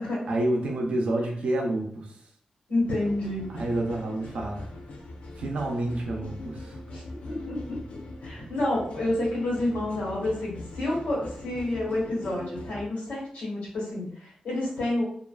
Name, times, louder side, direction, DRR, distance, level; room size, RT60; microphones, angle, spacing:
voice 1, 0.3-2.2 3.5-4.7 5.4-6.8 8.4-8.5, right 1 dB, 60° right, 1 dB, 0.5 m, -29 dB
voice 2, 2.7-3.5 6.9-15.0, left 1 dB, 80° left, -4 dB, 1.2 m, -29 dB
sound 1, 2.9-12.9, left 2 dB, 65° left, 0.4 m, -42 dB
2.4 x 2.3 x 2.3 m, 0.63 s
wide cardioid pair, 160°, 2 cm